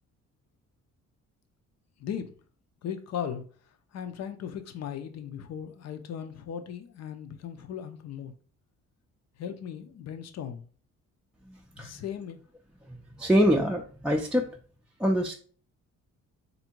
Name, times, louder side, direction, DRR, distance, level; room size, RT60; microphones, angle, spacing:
voice 1, 2.8-3.4 3.9-8.3 9.4-10.6 11.8-12.4, left 8 dB, 60° left, 7 dB, 0.7 m, -37 dB
voice 2, 11.5-12.0 12.9-14.5 15.0-15.3, equal, 5° right, 0 dB, 0.5 m, -25 dB
3.4 x 2.7 x 4.5 m, 0.44 s
cardioid pair, 90°, 30 cm